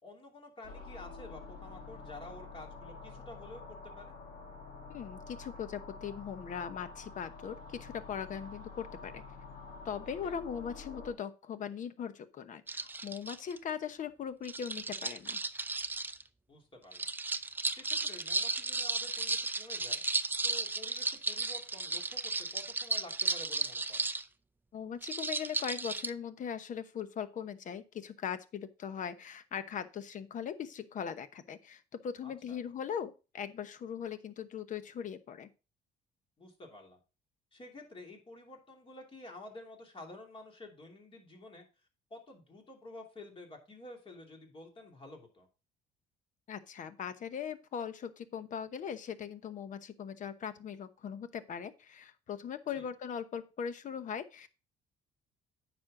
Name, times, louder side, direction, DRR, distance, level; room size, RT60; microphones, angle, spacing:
voice 1, 0.0-4.2 10.2-10.3 16.5-17.1 17.7-20.0 20.4-24.1 32.2-32.6 36.4-37.0 37.5-41.6 42.1-45.5 52.7-52.9, left 2 dB, 30° left, 1 dB, 3.0 m, -50 dB
sound 1, 0.6-11.1, left 4 dB, 85° left, 2.3 m, -48 dB
voice 2, 4.9-9.2 9.8-15.4 24.7-35.5 46.5-54.5, left 7 dB, 50° left, 12 dB, 1.0 m, -40 dB
sound 2, 12.7-13.6 14.4-16.2 16.9-24.2 25.0-26.1, right 3 dB, 10° right, 0.5 m, -34 dB
9.5 x 6.2 x 3.7 m, 0.31 s
cardioid pair, 110°, 17 cm